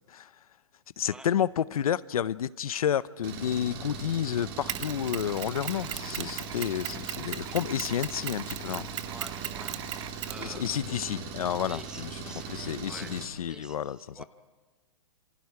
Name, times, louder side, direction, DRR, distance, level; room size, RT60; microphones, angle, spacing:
voice 1, 1.0-8.9 10.4-12.2 12.5-14.2, left 9 dB, 90° left, 17 dB, 0.7 m, -30 dB
Engine, 3.2-13.3, right 5 dB, 40° right, 3.5 m, -40 dB
Mechanisms, 4.7-11.0, right 11 dB, 55° right, 1.3 m, -38 dB
voice 2, 7.4-7.8 9.0-10.7 11.7-13.2 13.4-14.2, right 2 dB, 5° right, 8 dB, 1.1 m, -48 dB
27.5 x 27.0 x 4.8 m, 1.4 s
hypercardioid pair, 155°, 18 cm